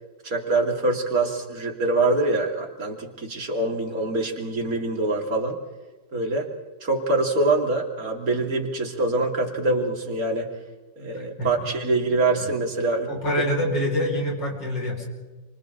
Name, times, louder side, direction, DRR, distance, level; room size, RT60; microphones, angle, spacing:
voice 1, 0.2-5.6 6.1-6.5 6.8-10.5 11.0-13.1, right 2 dB, 50° right, 2 dB, 3.2 m, -24 dB
voice 2, 11.1-11.5 13.1-15.0, equal, 85° left, -1 dB, 6.3 m, -26 dB
28.5 x 26.0 x 3.9 m, 1.2 s
omnidirectional pair, 1.9 m